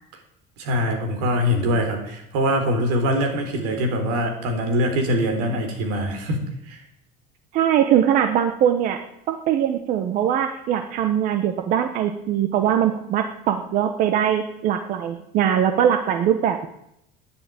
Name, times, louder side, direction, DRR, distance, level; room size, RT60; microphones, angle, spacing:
voice 1, 0.6-6.4 6.7-6.8, equal, 85° right, 4 dB, 3.8 m, -23 dB
voice 2, 7.5-9.0 9.3-16.7, right 9 dB, 50° right, 7 dB, 1.0 m, -21 dB
10.5 x 10.0 x 9.1 m, 0.78 s
cardioid pair, 155°, 17 cm